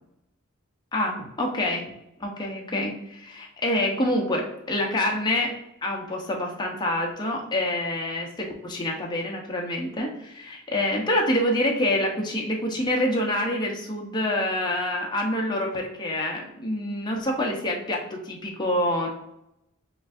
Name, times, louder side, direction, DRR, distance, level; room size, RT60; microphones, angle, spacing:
voice 1, 0.9-1.9 2.2-5.5 5.8-19.1, left 1 dB, 20° left, -1 dB, 0.8 m, -26 dB
7.0 x 2.7 x 2.5 m, 0.80 s
head